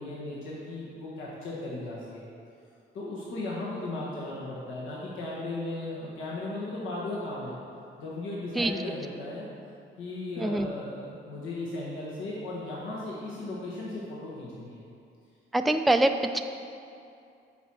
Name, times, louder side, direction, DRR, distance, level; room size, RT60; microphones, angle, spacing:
voice 1, 0.0-2.3 2.9-7.6 8.0-9.5 10.0-14.8, left 2 dB, 80° left, -5 dB, 1.4 m, -36 dB
voice 2, 10.4-10.7 15.5-16.4, right 1 dB, ahead, 6 dB, 0.3 m, -24 dB
8.0 x 4.5 x 6.1 m, 2.5 s
cardioid pair, 90°, 20 cm